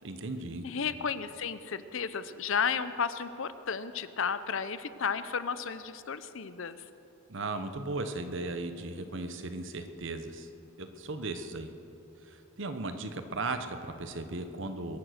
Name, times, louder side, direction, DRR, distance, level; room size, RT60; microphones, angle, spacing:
voice 1, 0.0-0.7 7.3-10.5 10.8-11.7 12.2-15.0, right 2 dB, 55° right, 8 dB, 1.0 m, -36 dB
voice 2, 0.6-6.8, left 6 dB, 60° left, 13 dB, 0.6 m, -33 dB
22.0 x 9.2 x 6.4 m, 3.0 s
head